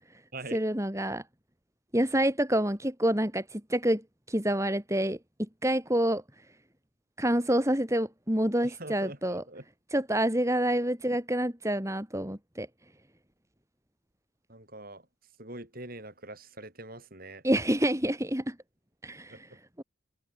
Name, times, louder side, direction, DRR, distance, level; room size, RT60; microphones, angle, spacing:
voice 1, 0.5-1.2 1.9-4.0 4.3-5.2 5.6-6.2 7.2-9.4 9.9-12.7 17.4-18.6 19.0-19.5 19.8-19.9, right 1 dB, 15° right, 3.6 m, -27 dB
voice 2, 8.6-9.6 14.5-15.0 15.4-17.4 19.3-19.4, right 2 dB, 45° right, 7.9 m, -43 dB
head